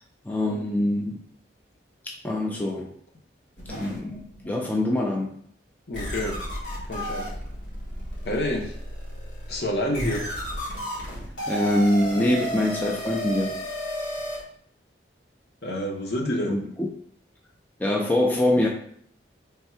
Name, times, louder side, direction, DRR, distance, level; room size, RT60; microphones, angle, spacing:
voice 1, 0.3-1.2 2.0-2.9 3.7-4.2 4.5-5.3 11.5-13.6 16.5-16.7 17.8-18.7, left 1 dB, 10° left, -1 dB, 0.3 m, -24 dB
sound 1, 3.6-4.7 5.3-5.4 5.9-14.4, equal, 80° left, 1.3 m, -33 dB
voice 2, 5.9-6.4 6.9-7.3 8.2-8.7 9.5-10.3 15.6-16.5, left 1 dB, 60° left, -1 dB, 0.8 m, -28 dB
3.5 x 2.2 x 4.3 m, 0.64 s
head